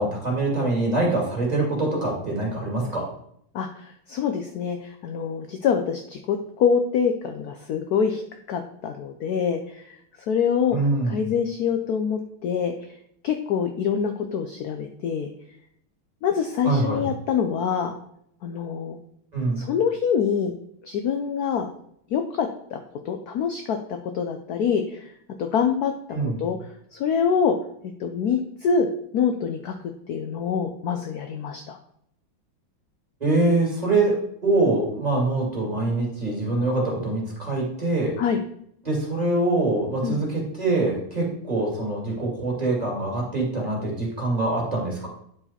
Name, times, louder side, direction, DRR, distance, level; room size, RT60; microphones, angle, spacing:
voice 1, 0.0-3.1 10.7-11.3 16.6-17.0 19.3-19.6 26.1-26.4 33.2-38.1 38.8-45.1, right 2 dB, 20° right, -3 dB, 2.5 m, -24 dB
voice 2, 3.5-8.2 8.5-9.8 10.3-10.8 11.1-12.7 13.2-15.3 16.2-18.0 18.4-19.0 19.6-20.5 20.8-21.7 22.1-22.8 23.1-23.8 24.1-25.0 25.4-25.9 26.4-26.6 26.9-27.5 28.0-28.9 29.1-29.7 30.1-31.8 38.2-38.4 40.0-40.2, left 7 dB, 70° left, 6 dB, 0.9 m, -25 dB
9.8 x 4.7 x 4.2 m, 0.71 s
omnidirectional pair, 2.2 m